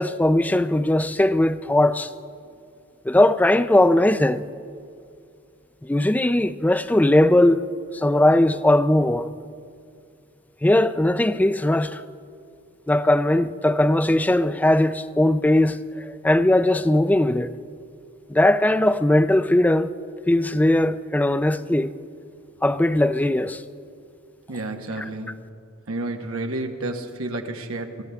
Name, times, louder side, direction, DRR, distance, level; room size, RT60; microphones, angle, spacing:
voice 1, 0.0-2.1 3.1-4.5 5.8-7.6 7.9-9.3 10.6-12.0 12.9-17.5 18.3-19.9 20.3-21.9 22.6-23.6, left 1 dB, 10° left, 0.3 m, -19 dB
voice 2, 24.5-25.3 25.9-28.0, right 2 dB, 85° right, 1.2 m, -30 dB
24.0 x 14.0 x 3.5 m
head